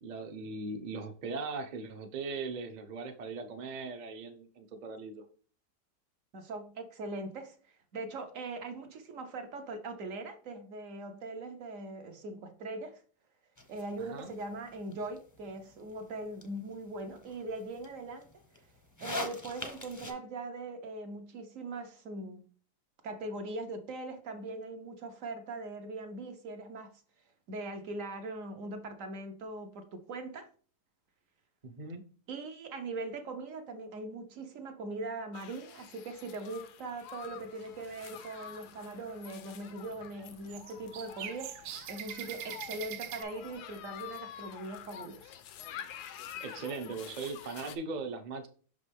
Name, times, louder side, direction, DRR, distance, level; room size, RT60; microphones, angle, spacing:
voice 1, 0.0-5.2 14.0-14.3 31.6-32.0 46.4-48.5, right 4 dB, 45° right, 0.6 m, -39 dB
voice 2, 6.3-13.0 13.7-18.4 19.0-22.4 23.0-27.0 27.5-30.5 32.3-45.3, right 2 dB, 60° right, 1.1 m, -41 dB
sound 1, 13.6-20.1, left 2 dB, 20° left, 0.5 m, -45 dB
sound 2, 35.3-47.8, left 10 dB, 80° left, 1.2 m, -48 dB
sound 3, 37.2-38.3 38.7-39.2 39.5-43.2, right 11 dB, 80° right, 1.1 m, -44 dB
5.8 x 5.3 x 3.4 m
omnidirectional pair, 1.7 m